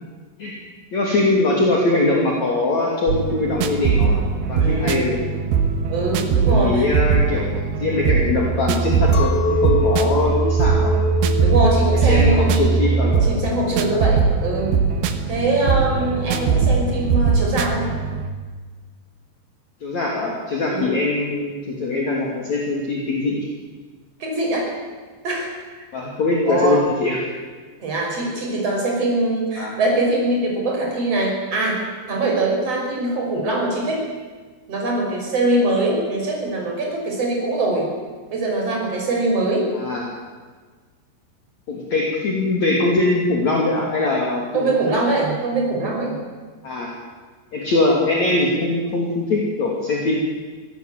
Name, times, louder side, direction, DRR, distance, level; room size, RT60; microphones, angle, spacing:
voice 1, 0.9-4.2 4.5-5.2 6.5-10.9 11.9-13.3 13.9-14.0 19.8-23.5 25.9-27.2 29.6-29.7 39.7-40.1 41.7-44.8 46.6-46.9 47.5-50.2, left 2 dB, 45° left, -2 dB, 3.9 m, -22 dB
sound 1, 3.1-18.3, right 5 dB, 70° right, 3.1 m, -20 dB
voice 2, 4.6-5.0 5.9-6.9 11.4-12.6 13.3-14.7 15.3-17.9 20.7-20.9 24.2-24.7 25.2-25.9 26.5-26.8 27.8-31.8 32.1-34.0 34.7-37.9 38.3-39.7 44.5-46.2, right 2 dB, 35° right, 0 dB, 6.8 m, -22 dB
Chink clink, 9.1-14.6, left 2 dB, 65° left, 3.5 m, -26 dB
25.0 x 17.5 x 8.2 m, 1.4 s
omnidirectional pair, 5.0 m